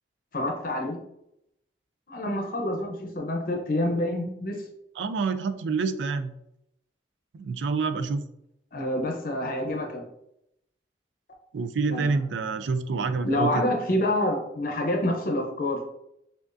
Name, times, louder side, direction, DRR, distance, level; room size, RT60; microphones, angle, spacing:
voice 1, 0.3-1.0 2.1-4.6 8.7-10.0 11.9-12.1 13.0-15.9, left 1 dB, 50° left, 2 dB, 0.6 m, -27 dB
voice 2, 5.0-6.3 7.3-8.2 11.5-13.6, right 4 dB, 85° right, 10 dB, 0.4 m, -27 dB
6.1 x 2.4 x 2.5 m, 0.79 s
head